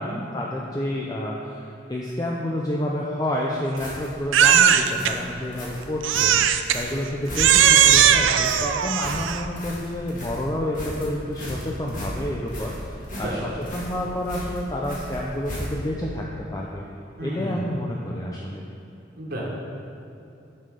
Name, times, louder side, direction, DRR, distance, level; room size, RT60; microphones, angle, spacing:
voice 1, 0.0-16.2 16.5-16.8 17.2-18.7, left 1 dB, 20° left, -3 dB, 0.5 m, -29 dB
sound 1, 3.8-16.0, equal, 45° left, 1.9 m, -36 dB
Crying sobbing, 4.3-5.1 6.0-6.8 7.4-9.5, right 9 dB, 90° right, 0.4 m, -18 dB
voice 2, 13.1-13.4 17.2-17.6 19.2-19.4, right 1 dB, 50° right, -3 dB, 1.6 m, -32 dB
7.4 x 6.6 x 5.1 m, 2.8 s
head